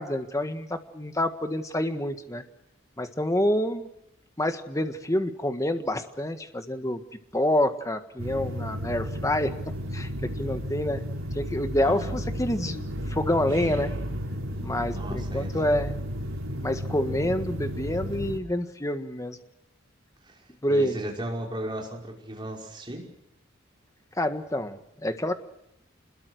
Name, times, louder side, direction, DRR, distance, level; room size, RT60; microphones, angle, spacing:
voice 1, 0.0-2.4 3.0-3.9 4.4-7.0 7.3-9.5 9.9-11.0 11.3-13.9 14.6-15.9 16.6-19.4 20.6-21.0 24.2-25.3, left 1 dB, 15° left, 8 dB, 1.6 m, -27 dB
sound 1, 8.2-18.4, equal, 85° right, 5.5 m, -33 dB
voice 2, 11.8-12.1 14.9-15.7 20.2-23.0, right 1 dB, 25° right, 0 dB, 5.3 m, -36 dB
26.0 x 21.0 x 6.4 m, 0.82 s
head